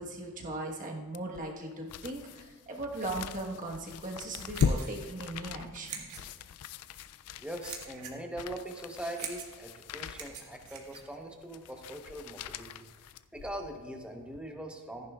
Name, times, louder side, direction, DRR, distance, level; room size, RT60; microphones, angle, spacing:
voice 1, 0.0-6.0, right 2 dB, 35° right, 0 dB, 1.3 m, -38 dB
sound 1, 1.1-13.8 14.3-14.4, left 6 dB, 85° left, 0.4 m, -39 dB
Clipping w. scissors, 4.3-11.7, right 7 dB, 70° right, 1.6 m, -46 dB
voice 2, 7.4-12.9 13.3-15.1, right 1 dB, 5° right, 2 dB, 1.0 m, -41 dB
14.5 x 10.5 x 2.4 m, 1.5 s
head